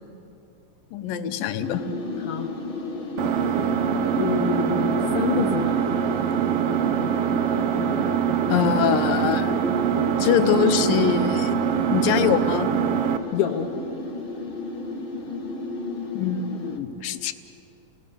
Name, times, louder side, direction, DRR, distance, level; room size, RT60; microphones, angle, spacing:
voice 1, 0.9-1.8 8.5-9.6 10.2-11.6 11.9-12.7 16.1-17.3, left 8 dB, 85° left, 9 dB, 2.6 m, -23 dB
sound 1, 1.6-16.8, left 3 dB, 20° left, 1.8 m, -33 dB
Engine, 3.2-13.2, right 9 dB, 75° right, 1.3 m, -24 dB
voice 2, 4.2-5.8 13.3-13.7, left 8 dB, 65° left, 1 dB, 2.8 m, -26 dB
29.5 x 18.5 x 6.7 m, 2.8 s
omnidirectional pair, 3.9 m